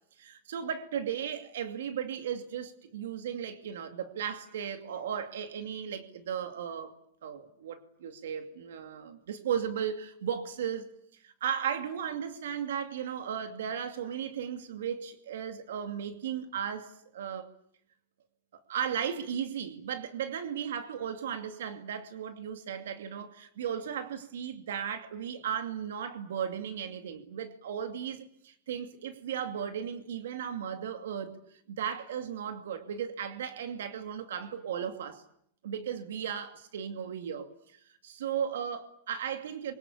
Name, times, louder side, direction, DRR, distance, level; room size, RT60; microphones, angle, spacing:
voice 1, 0.2-6.9 7.2-10.9 11.2-17.5 18.7-31.4 31.7-35.2 35.6-39.7, right 8 dB, 85° right, 2.5 m, -36 dB
27.5 x 24.0 x 8.5 m
supercardioid pair, 140°, 0 cm